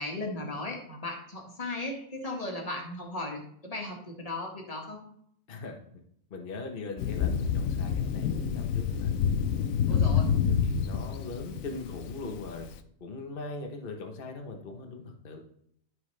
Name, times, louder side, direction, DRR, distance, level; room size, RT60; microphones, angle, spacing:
voice 1, 0.0-5.0 9.9-10.3, left 2 dB, 25° left, 0 dB, 1.8 m, -36 dB
voice 2, 5.5-6.0 6.3-9.1 9.8-10.0 10.5-12.7 13.0-15.4, left 3 dB, 45° left, 3 dB, 1.1 m, -40 dB
Thunder, 7.0-12.7, left 7 dB, 75° left, 1.0 m, -28 dB
13.0 x 4.7 x 3.3 m, 0.68 s
omnidirectional pair, 1.5 m